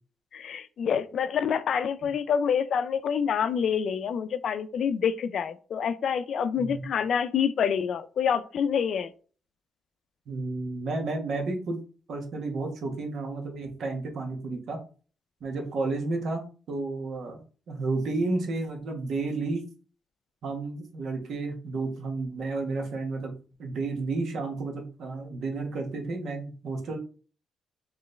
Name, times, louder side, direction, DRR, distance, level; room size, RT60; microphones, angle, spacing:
voice 1, 0.3-9.1, left 7 dB, 60° left, 0.4 m, -27 dB
voice 2, 10.3-11.8 12.1-14.8 15.4-19.7 20.4-23.3 23.6-27.0, right 3 dB, 65° right, 1.3 m, -32 dB
4.3 x 3.1 x 3.2 m
cardioid pair, 90°, 0 cm